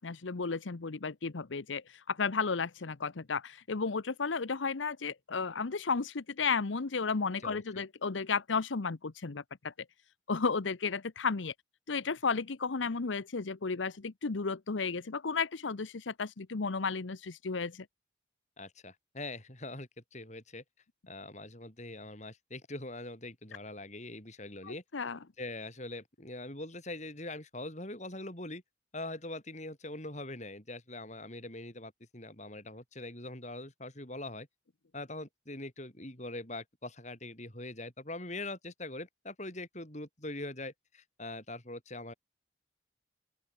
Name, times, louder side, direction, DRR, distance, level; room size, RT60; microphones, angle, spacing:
voice 1, 0.0-9.7 10.3-11.5 11.9-17.9 24.6-25.2, left 4 dB, 80° left, 0.8 m, -33 dB
voice 2, 7.4-7.8 18.6-20.6 21.1-24.8 25.4-28.6 28.9-34.5 34.9-42.1, left 2 dB, 40° left, 6.6 m, -43 dB
open air
head